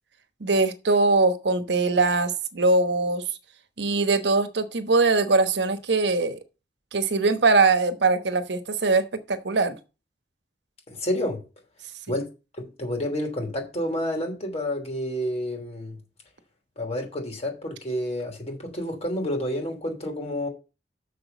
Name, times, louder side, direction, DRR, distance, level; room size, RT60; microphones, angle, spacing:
voice 1, 0.4-3.3 3.8-6.4 6.9-9.8, right 3 dB, 70° right, 1.1 m, -22 dB
voice 2, 10.9-11.4 12.1-12.3 12.8-16.0 16.8-20.5, left 1 dB, 40° left, 3.0 m, -29 dB
6.7 x 6.2 x 6.9 m
head